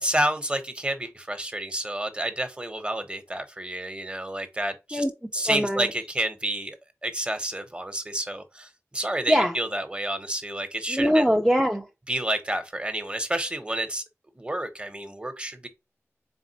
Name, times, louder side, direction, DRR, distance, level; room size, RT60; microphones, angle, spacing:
voice 1, 0.0-5.0 5.3-6.8 7.0-11.2 12.1-14.0 14.4-15.7, right 1 dB, 20° right, 1.0 m, -29 dB
voice 2, 5.5-5.9 9.3-9.5 10.9-11.9, equal, 5° right, 0.6 m, -22 dB
4.2 x 3.6 x 2.8 m
wide cardioid pair, 55°, 5 cm